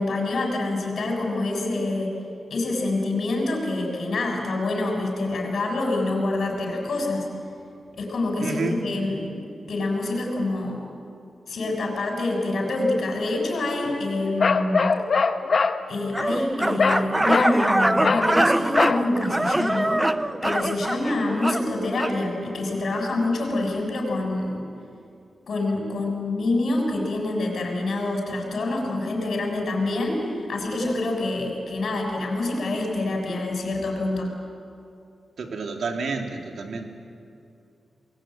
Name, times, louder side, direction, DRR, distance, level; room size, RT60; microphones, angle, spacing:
voice 1, 0.0-2.1 2.5-7.3 7.9-9.4 9.7-10.8 11.5-14.9 15.9-20.0 20.4-24.6 25.5-34.3, left 2 dB, 65° left, 1 dB, 6.9 m, -26 dB
voice 2, 8.4-8.8 35.4-36.8, right 3 dB, 70° right, 3 dB, 2.9 m, -29 dB
Bark, 14.4-15.8 16.8-17.0 17.3-17.6 18.0-18.3 18.8-19.0, left 4 dB, 50° left, 1.1 m, -21 dB
sound 1, 16.1-22.2, right 1 dB, 10° right, 0.6 m, -24 dB
28.5 x 21.5 x 9.0 m, 2.6 s
wide cardioid pair, 140°, 0 cm